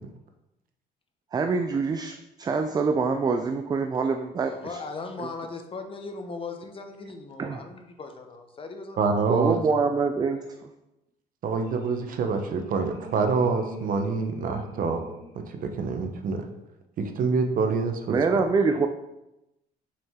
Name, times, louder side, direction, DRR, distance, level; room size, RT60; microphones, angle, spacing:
voice 1, 1.3-4.8 7.4-7.7 9.3-10.4 18.1-18.9, right 4 dB, 25° right, 6 dB, 0.4 m, -25 dB
voice 2, 4.4-9.6, left 4 dB, 30° left, 6 dB, 0.8 m, -39 dB
voice 3, 9.0-9.6 11.4-15.0 15.3-16.4 17.0-18.4, right 4 dB, 55° right, 6 dB, 0.8 m, -26 dB
sound 1, 11.6-16.4, right 2 dB, 70° left, 2.3 m, -45 dB
6.0 x 4.5 x 3.6 m, 0.92 s
cardioid pair, 110°, 17 cm